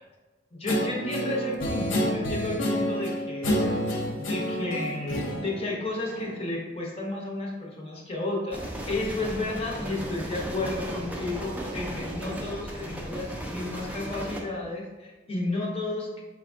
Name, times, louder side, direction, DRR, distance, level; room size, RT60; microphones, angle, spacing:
voice 1, 0.5-3.6 4.2-16.2, left 2 dB, 30° left, -2 dB, 0.7 m, -32 dB
Guitar, 0.7-6.5, equal, 70° left, 0.7 m, -29 dB
sound 1, 8.5-14.4, equal, 10° right, 0.4 m, -36 dB
4.6 x 3.5 x 2.4 m, 1.2 s
head